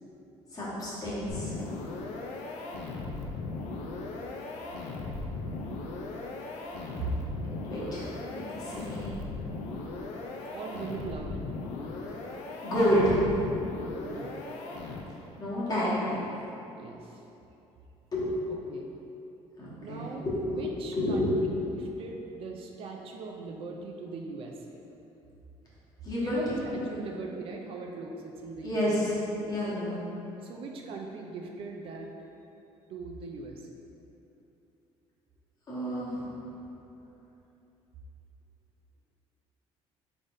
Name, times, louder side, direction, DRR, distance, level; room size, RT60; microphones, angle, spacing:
voice 1, 0.5-1.6 7.7-9.2 12.6-13.2 15.4-16.3 18.1-18.3 19.6-20.6 20.9-21.4 26.0-26.4 26.7-26.9 28.6-29.1 29.4-30.0 35.7-36.2, equal, 35° left, -8 dB, 1.2 m, -29 dB
sound 1, 1.3-15.3, left 3 dB, 80° left, 0.4 m, -38 dB
voice 2, 10.5-11.4 14.0-14.4 16.8-17.2 18.5-18.9 19.8-21.3 21.7-24.8 26.2-28.9 30.4-32.1 32.9-33.8, right 4 dB, 55° right, 1 dB, 0.4 m, -40 dB
3.8 x 3.4 x 2.6 m, 2.9 s
cardioid pair, 115°, 12 cm